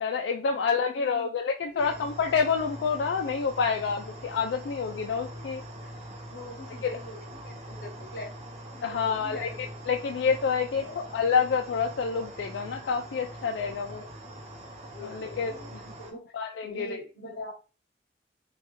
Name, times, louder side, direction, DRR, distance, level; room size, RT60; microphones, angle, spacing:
voice 1, 0.0-5.6 6.8-6.9 8.8-14.0 15.0-15.6 16.3-17.0, left 5 dB, 85° left, 0.3 m, -28 dB
voice 2, 0.5-1.3 1.7-1.9 6.3-8.4 8.7-9.8 10.8-11.1 14.2-14.5 14.9-16.2 16.6-17.5, left 1 dB, 60° left, 0.9 m, -43 dB
sound 1, 1.8-16.1, right 1 dB, 35° right, 0.7 m, -43 dB
3.2 x 2.3 x 3.0 m
head